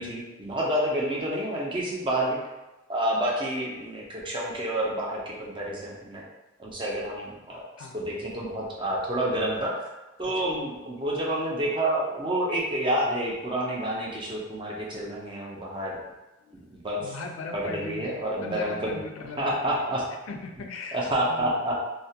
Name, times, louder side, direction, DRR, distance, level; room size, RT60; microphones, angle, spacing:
voice 1, 0.0-2.4 2.9-6.2 6.6-7.6 7.9-9.7 10.2-16.0 16.5-17.2 17.5-19.0 19.4-20.0 20.9-21.7, right 1 dB, 25° right, -4 dB, 0.4 m, -29 dB
voice 2, 16.4-19.6 20.3-21.6, left 4 dB, 85° left, 3 dB, 0.4 m, -39 dB
2.3 x 2.1 x 2.7 m, 1.1 s
head